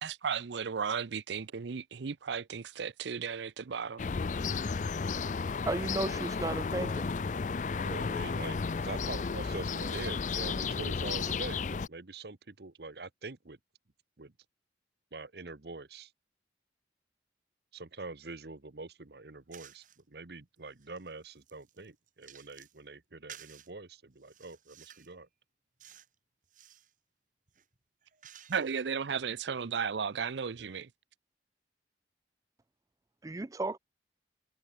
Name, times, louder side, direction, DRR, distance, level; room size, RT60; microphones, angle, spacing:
voice 1, 0.0-4.0 28.5-30.9, right 6 dB, 75° right, 0.6 m, -35 dB
sound 1, 4.0-11.9, left 5 dB, 45° left, 0.4 m, -33 dB
voice 2, 5.7-7.1 33.2-33.8, right 2 dB, 20° right, 0.4 m, -34 dB
voice 3, 7.8-13.6 14.2-14.3 15.1-16.1 17.7-25.3 30.5-30.7, right 3 dB, 60° right, 1.1 m, -44 dB
sound 2, 19.5-20.0 20.6-22.8 23.3-23.7 24.2-25.2 25.8-26.1 26.4-26.9 27.5-28.9, right 10 dB, 45° right, 3.4 m, -54 dB
head